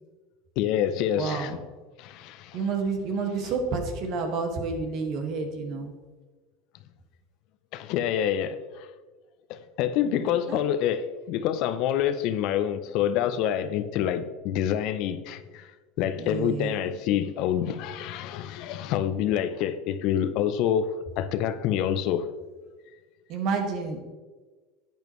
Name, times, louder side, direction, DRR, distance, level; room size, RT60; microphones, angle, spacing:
voice 1, 0.6-1.6 2.0-2.7 7.7-8.9 9.5-15.7 16.0-22.3, left 10 dB, 60° left, 0.6 m, -27 dB
voice 2, 1.2-1.6 2.5-5.9 10.0-10.6 16.2-16.9 23.3-24.0, right 4 dB, 55° right, 1.7 m, -30 dB
10.5 x 8.8 x 3.1 m
supercardioid pair, 115°, 0 cm